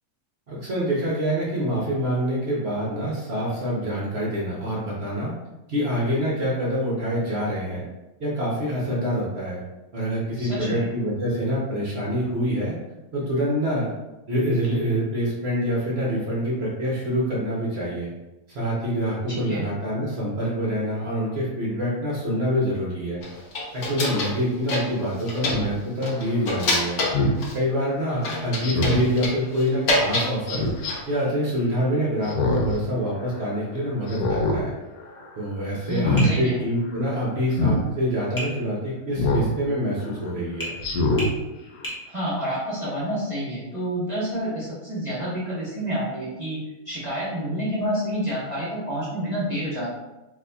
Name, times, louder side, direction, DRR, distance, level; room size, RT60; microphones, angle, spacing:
voice 1, 0.5-5.3 5.7-7.8 8.2-9.6 9.9-12.7 13.1-13.9 14.3-18.1 18.5-23.2 23.7-27.0 27.5-34.7 35.4-40.7, equal, 55° right, -5 dB, 0.8 m, -26 dB
voice 2, 10.4-10.8 19.3-19.6 28.1-28.3 35.9-36.6 42.0-46.6 46.8-49.9, equal, 25° right, -9 dB, 0.9 m, -29 dB
sound 1, 23.2-24.4 24.7-25.7 26.0-27.6 28.2-30.3 30.7-31.2, left 1 dB, 55° left, 1.0 m, -27 dB
Speech synthesizer, 25.5-25.7 27.1-27.4 28.6-29.1 30.5-30.9 32.2-32.8 33.2-33.3 34.1-34.6 35.0-35.3 35.9-36.3 37.5-37.8 39.2-39.5 40.0-40.1 40.8-41.3 41.8-41.9, left 1 dB, 80° left, 1.1 m, -23 dB
Tap, 36.2-36.4 38.4-38.5 40.6-40.8 41.2-41.4 41.8-42.0, equal, 20° left, 0.5 m, -31 dB
3.9 x 2.7 x 2.2 m, 1.0 s
omnidirectional pair, 1.7 m